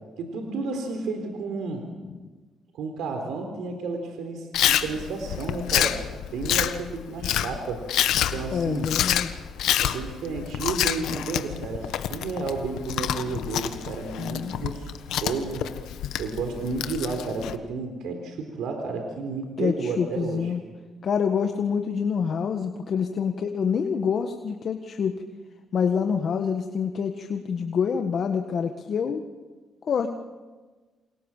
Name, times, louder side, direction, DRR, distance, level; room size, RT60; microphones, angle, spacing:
voice 1, 0.2-1.8 2.7-6.0 6.3-7.8 8.3-8.9 9.8-14.9 15.2-15.6 16.2-20.5, right 4 dB, 80° right, 4 dB, 4.1 m, -32 dB
Chewing mastication, 4.5-17.5, left 11 dB, 85° left, 1.4 m, -27 dB
voice 2, 8.5-9.3 14.2-14.7 19.6-20.6 21.0-25.2 25.7-29.2 29.8-30.1, left 6 dB, 55° left, 6 dB, 1.7 m, -27 dB
29.0 x 27.5 x 7.5 m, 1.3 s
cardioid pair, 90°, 0 cm